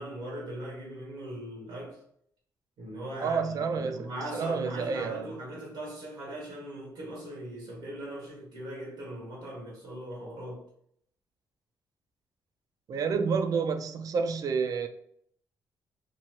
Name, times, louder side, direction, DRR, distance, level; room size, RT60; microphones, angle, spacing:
voice 1, 0.0-2.0 2.8-10.6, right 1 dB, 90° right, 1.1 m, -40 dB
voice 2, 3.2-5.3 12.9-14.9, right 5 dB, 50° right, 0.4 m, -29 dB
2.9 x 2.3 x 2.9 m
cardioid pair, 105°, 8 cm